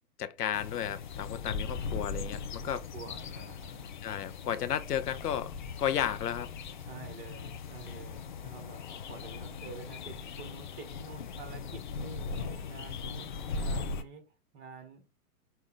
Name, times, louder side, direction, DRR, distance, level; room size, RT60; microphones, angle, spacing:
voice 1, 0.2-2.8 4.0-5.5 5.8-6.5, left 10 dB, 75° left, 0.7 m, -33 dB
sound 1, 0.5-14.0, left 4 dB, 35° left, 0.4 m, -39 dB
voice 2, 2.6-3.9 6.8-13.3 13.6-14.3 14.5-15.1, right 5 dB, 30° right, 1.2 m, -48 dB
5.3 x 2.2 x 3.8 m
figure-of-eight pair, 115°, 47 cm